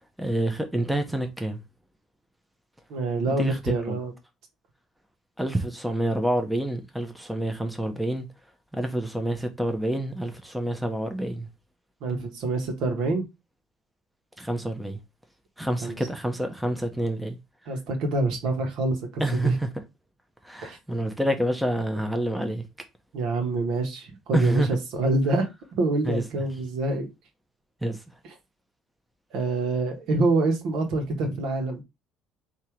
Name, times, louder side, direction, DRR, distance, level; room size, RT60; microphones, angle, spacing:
voice 1, 0.2-1.6 3.3-3.6 3.9-4.0 5.4-8.3 8.7-11.5 14.4-15.0 15.6-17.4 19.2-19.5 20.4-22.6 24.3-24.7 26.1-26.2 27.8-28.0, right 1 dB, 5° right, 0.8 m, -27 dB
voice 2, 2.9-4.1 12.0-13.2 15.8-16.0 17.7-19.6 20.6-20.8 23.1-27.1 28.2-28.3 29.3-31.8, right 2 dB, 70° right, 1.5 m, -26 dB
3.6 x 2.9 x 4.5 m
cardioid pair, 100°, 0 cm